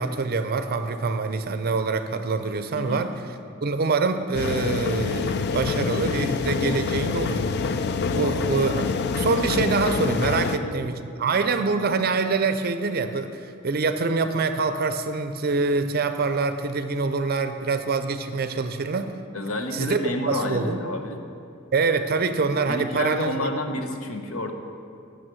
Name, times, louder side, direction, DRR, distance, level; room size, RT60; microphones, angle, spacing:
voice 1, 0.0-3.1 3.6-7.8 8.1-19.1 19.7-20.0 20.3-20.8 21.7-23.6, right 4 dB, 50° right, 9 dB, 0.5 m, -25 dB
voice 2, 2.8-3.1 8.0-8.5 10.4-10.7 11.3-11.5 19.3-21.2 22.7-24.5, left 2 dB, 85° left, 5 dB, 0.9 m, -30 dB
sound 1, 4.3-10.6, left 5 dB, 55° left, 0.4 m, -26 dB
9.1 x 6.4 x 6.2 m, 2.6 s
head